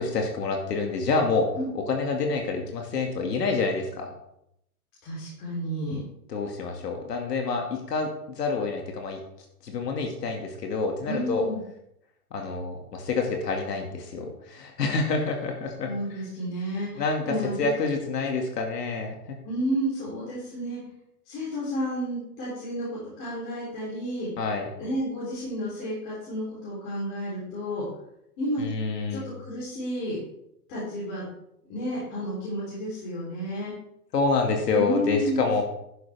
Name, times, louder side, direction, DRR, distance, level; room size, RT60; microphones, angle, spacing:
voice 1, 0.0-1.5 1.7-4.1 6.3-9.2 9.6-11.5 12.3-15.9 16.7-19.3 24.4-24.7 28.6-29.3 34.1-35.6, left 4 dB, 90° left, 2 dB, 2.4 m, -27 dB
voice 2, 5.0-6.0 11.1-11.6 15.8-17.7 19.4-20.8 21.3-24.3 24.8-27.9 28.4-28.6 29.1-30.2 30.7-31.3 31.7-33.7 34.7-35.5, equal, 25° left, -9 dB, 3.8 m, -31 dB
10.5 x 9.1 x 3.5 m, 0.78 s
hypercardioid pair, 165°, 47 cm